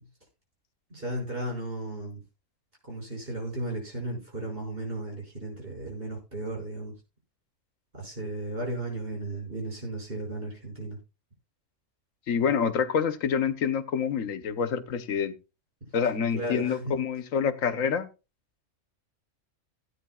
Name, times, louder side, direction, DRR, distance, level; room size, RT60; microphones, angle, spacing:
voice 1, 0.9-2.2 2.8-6.9 7.9-11.0 15.8-15.9 16.3-16.9, right 1 dB, 45° right, 0 dB, 6.4 m, -35 dB
voice 2, 12.3-15.3 15.9-18.1, left 7 dB, 85° left, 11 dB, 1.4 m, -27 dB
17.0 x 9.6 x 2.3 m, 0.29 s
omnidirectional pair, 1.3 m